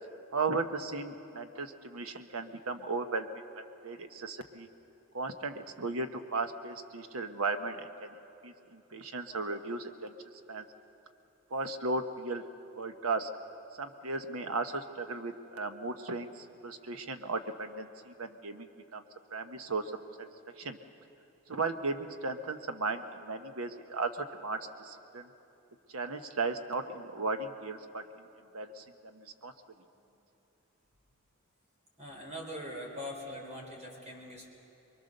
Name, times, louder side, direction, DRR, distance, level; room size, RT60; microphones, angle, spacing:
voice 1, 0.3-4.7 5.1-8.2 8.4-10.1 10.5-10.6 11.5-12.4 12.8-13.3 13.7-19.0 19.3-20.3 20.6-20.8 21.5-25.3 25.9-28.3 28.5-29.5, right 3 dB, 80° right, 7 dB, 1.2 m, -36 dB
voice 2, 32.0-34.5, equal, 35° right, -1 dB, 4.1 m, -42 dB
24.5 x 22.5 x 6.7 m, 2.9 s
head